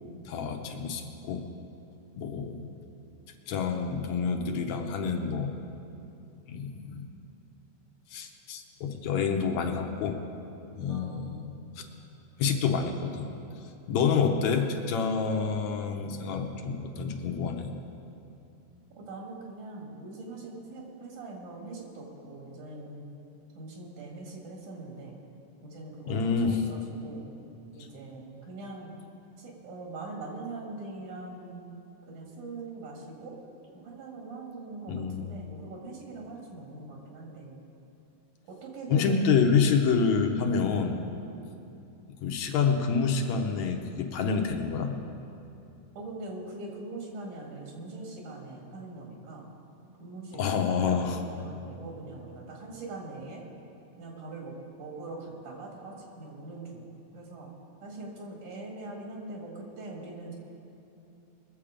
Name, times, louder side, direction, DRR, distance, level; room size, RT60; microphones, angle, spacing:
voice 1, 0.3-1.5 2.2-2.7 3.5-5.5 6.5-7.1 8.1-10.2 10.8-11.5 12.4-13.3 13.9-17.7 26.1-26.6 34.9-35.3 38.9-41.0 42.2-44.9 50.3-51.2, left 5 dB, 75° left, 4 dB, 2.1 m, -28 dB
voice 2, 10.9-11.5 19.0-23.1 23.6-25.2 25.6-26.2 26.4-27.3 27.7-28.9 29.4-31.7 32.1-33.4 33.7-37.6 38.4-39.2 46.0-49.5 50.0-53.5 54.0-57.5 57.8-60.3, right 2 dB, 85° right, -1 dB, 3.5 m, -42 dB
21.5 x 7.4 x 5.0 m, 2.8 s
omnidirectional pair, 3.4 m